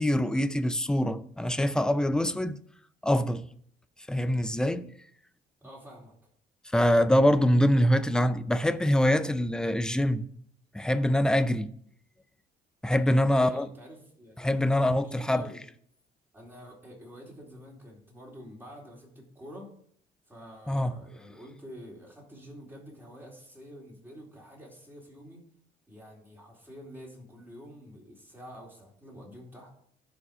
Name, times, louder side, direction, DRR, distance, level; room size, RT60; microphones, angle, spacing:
voice 1, 0.0-2.6 3.0-3.4 4.1-4.9 6.7-10.3 10.7-11.7 12.8-13.7 14.4-15.5 20.7-21.0, left 1 dB, 5° left, 0.5 m, -24 dB
voice 2, 5.6-6.1 13.3-14.5 14.8-15.6 16.3-19.7 20.3-25.4 25.9-29.7, equal, 10° right, 3.7 m, -48 dB
12.0 x 5.1 x 5.0 m
cardioid pair, 110°, 17 cm